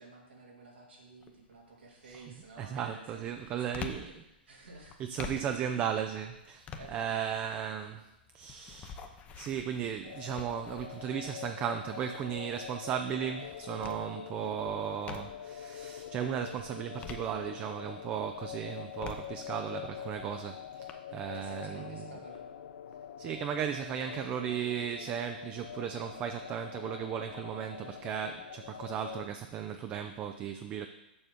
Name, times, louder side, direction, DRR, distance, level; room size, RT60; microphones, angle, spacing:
voice 1, 0.0-4.1 4.5-5.2 6.8-7.5 21.3-22.5, right 3 dB, 90° right, -2 dB, 2.6 m, -52 dB
sound 1, 1.2-1.6 2.1-15.6 16.1-17.9 18.3-20.9, left 6 dB, 25° left, 0.7 m, -48 dB
voice 2, 2.6-4.0 5.0-8.1 8.3-9.0 9.3-22.1 23.2-30.9, right 9 dB, 30° right, 7 dB, 0.5 m, -36 dB
sound 2, 10.0-29.3, left 9 dB, 65° left, 0.4 m, -45 dB
7.0 x 6.0 x 5.1 m, 0.91 s
hypercardioid pair, 125°, 6 cm